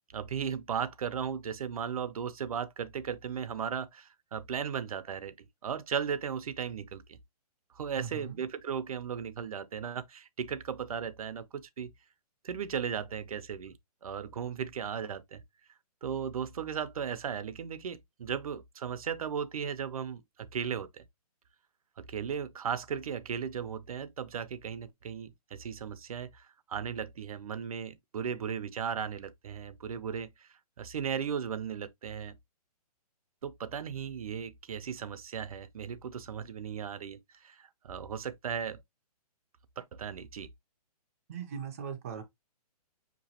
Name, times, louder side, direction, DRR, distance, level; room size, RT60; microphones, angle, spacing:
voice 1, 0.1-7.2 7.7-11.9 12.4-13.8 14.0-15.4 16.0-21.0 22.0-32.4 33.4-38.8 39.8-40.5, right 7 dB, 65° right, 0.6 m, -36 dB
voice 2, 8.0-8.4 41.3-42.2, right 7 dB, 25° right, 0.6 m, -39 dB
5.8 x 3.0 x 2.8 m
hypercardioid pair, 170°, 20 cm